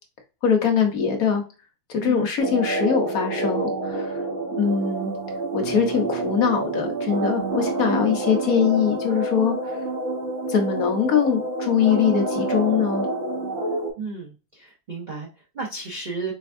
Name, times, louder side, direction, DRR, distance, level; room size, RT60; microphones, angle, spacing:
voice 1, 0.4-1.4 1.9-4.2 4.6-5.1 5.5-9.5 10.5-13.1, left 7 dB, 60° left, 3 dB, 1.1 m, -22 dB
sound 1, 2.4-13.9, right 2 dB, 45° right, 1.3 m, -28 dB
Bass guitar, 5.6-10.0, right 7 dB, 65° right, 1.1 m, -37 dB
voice 2, 14.0-16.3, right 4 dB, 90° right, -1 dB, 0.4 m, -33 dB
4.8 x 3.4 x 2.5 m, 0.33 s
omnidirectional pair, 2.0 m